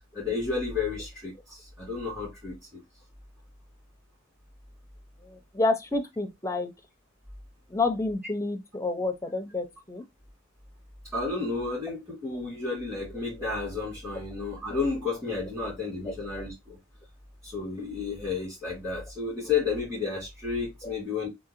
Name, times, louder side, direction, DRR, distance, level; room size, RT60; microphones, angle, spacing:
voice 1, 0.1-2.8 11.1-16.8 17.4-21.3, left 4 dB, 15° right, 2.4 m, -32 dB
voice 2, 5.2-6.7 7.7-10.0 16.0-16.1 20.8-20.9, left 2 dB, 15° left, 0.5 m, -29 dB
3.7 x 2.7 x 2.9 m
head